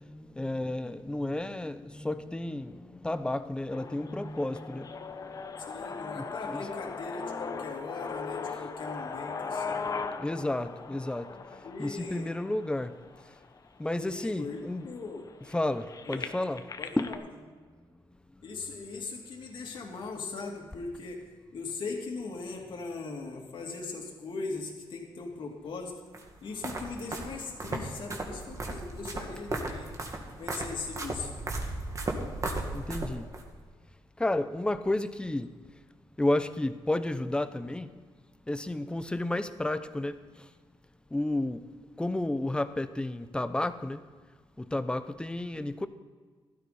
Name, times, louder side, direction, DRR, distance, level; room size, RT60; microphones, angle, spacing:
voice 1, 0.1-2.8 3.0-4.8 6.2-6.6 10.2-11.3 11.8-12.9 13.8-14.9 15.5-16.6 17.0-17.2 32.7-33.2 34.2-35.5 36.2-37.9 38.5-40.1 41.1-41.6 42.0-44.0 44.7-45.9, left 1 dB, 10° left, 0.7 m, -31 dB
sound 1, 3.7-13.7 14.3-14.4 14.7-17.2, left 5 dB, 40° left, 0.9 m, -39 dB
voice 2, 5.6-9.9 11.6-12.3 14.0-15.2 16.1-16.3 16.8-17.2 18.4-21.2 21.5-25.9 26.4-31.4, left 4 dB, 60° left, 2.7 m, -39 dB
sound 2, 26.1-33.4, right 2 dB, 35° right, 2.1 m, -36 dB
16.0 x 12.5 x 4.3 m
cardioid pair, 105°, 9 cm